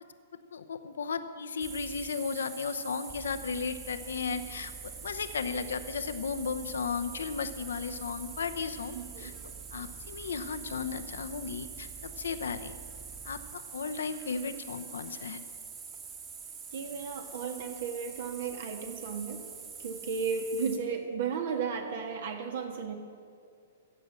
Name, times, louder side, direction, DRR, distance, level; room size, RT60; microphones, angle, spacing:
voice 1, 0.5-4.7 5.0-9.3 9.7-12.7 13.2-15.4, left 5 dB, 75° left, 10 dB, 0.8 m, -35 dB
sound 1, 1.6-20.8, right 6 dB, 30° right, 1.9 m, -44 dB
voice 2, 8.9-9.3 16.7-19.4 19.8-23.0, right 6 dB, 60° right, 5 dB, 1.8 m, -34 dB
15.5 x 7.7 x 7.7 m, 2.3 s
hypercardioid pair, 115°, 0 cm